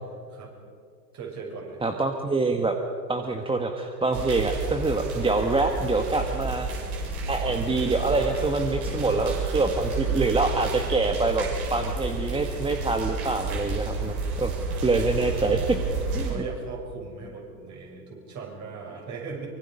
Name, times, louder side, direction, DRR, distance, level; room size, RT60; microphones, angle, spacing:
voice 1, 1.1-1.8 8.9-9.1 16.1-19.5, right 4 dB, 35° right, 0 dB, 6.4 m, -38 dB
voice 2, 1.8-2.8 3.1-6.7 7.2-14.5 14.8-15.8 16.1-16.4, right 3 dB, 10° right, 4 dB, 1.4 m, -25 dB
sound 1, 4.1-16.3, right 3 dB, 60° right, 6.5 m, -31 dB
24.5 x 24.0 x 5.4 m, 2.4 s
figure-of-eight pair, 90°, 50 cm